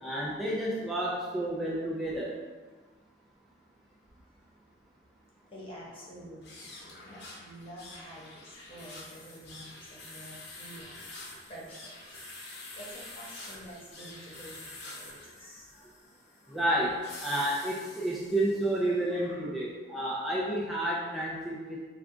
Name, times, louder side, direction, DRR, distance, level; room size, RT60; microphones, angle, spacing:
voice 1, 0.0-2.3 16.5-21.8, right 1 dB, ahead, -6 dB, 0.4 m, -30 dB
voice 2, 5.5-10.9 11.5-11.8 12.1-14.5 14.8-15.9 16.4-16.6 19.1-19.5, equal, 30° left, -6 dB, 0.9 m, -48 dB
sound 1, 6.4-18.9, left 2 dB, 60° left, 0.8 m, -47 dB
3.4 x 2.3 x 3.7 m, 1.3 s
head